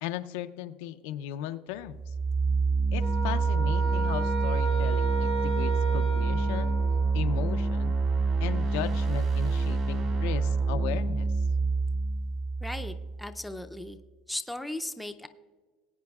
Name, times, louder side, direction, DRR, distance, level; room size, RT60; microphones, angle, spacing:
voice 1, 0.0-2.1 2.9-6.8 7.1-8.0 8.4-11.3, left 11 dB, 85° left, 10 dB, 0.5 m, -36 dB
sound 1, 1.9-13.7, right 4 dB, 45° right, 1.8 m, -27 dB
sound 2, 3.0-7.4, right 5 dB, 85° right, 1.2 m, -34 dB
voice 2, 12.6-14.0 14.3-15.3, left 1 dB, 5° left, 7 dB, 0.5 m, -37 dB
19.0 x 8.7 x 2.4 m, 1.5 s
cardioid pair, 150°, 0 cm